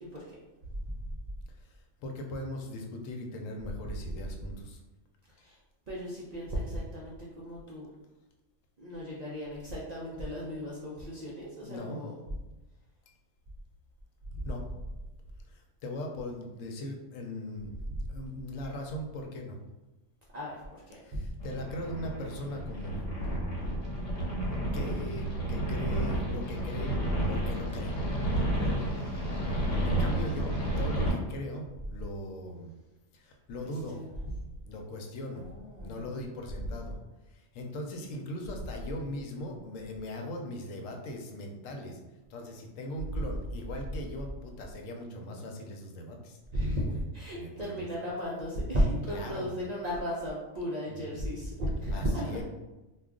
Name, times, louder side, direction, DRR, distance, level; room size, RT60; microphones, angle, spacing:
voice 1, 0.0-0.4 5.4-5.6 5.9-7.9 8.8-12.1 14.3-14.4 20.3-21.2 33.6-34.1 35.3-36.2 46.5-52.4, equal, 55° right, -6 dB, 0.4 m, -35 dB
voice 2, 1.6-4.8 11.6-12.0 14.4-14.6 15.5-17.8 18.1-19.6 20.9-23.0 24.7-26.9 27.3-28.0 29.8-32.7 33.1-34.0 34.6-35.5 35.8-37.0 37.3-42.0 42.3-46.4 47.4-47.9 49.1-49.6 50.9-51.2 51.9-52.4, left 1 dB, 90° left, 2 dB, 1.0 m, -39 dB
sound 1, 21.4-31.1, right 1 dB, 75° left, 1.2 m, -31 dB
2.3 x 2.2 x 3.6 m, 1.1 s
omnidirectional pair, 1.3 m